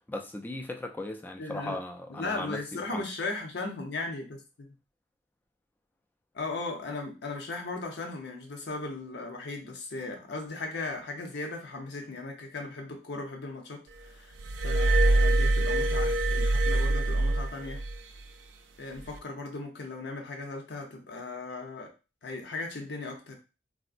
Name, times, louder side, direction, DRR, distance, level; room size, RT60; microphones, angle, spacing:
voice 1, 0.1-3.1, left 1 dB, 10° left, 0.4 m, -37 dB
voice 2, 1.4-1.8 2.1-4.7 6.3-14.3 14.6-17.8 18.8-21.9 22.2-23.4, left 3 dB, 65° left, 0.7 m, -37 dB
Glass, 14.4-18.0 19.0-19.2, right 2 dB, 85° right, 0.4 m, -24 dB
3.6 x 2.0 x 2.5 m
head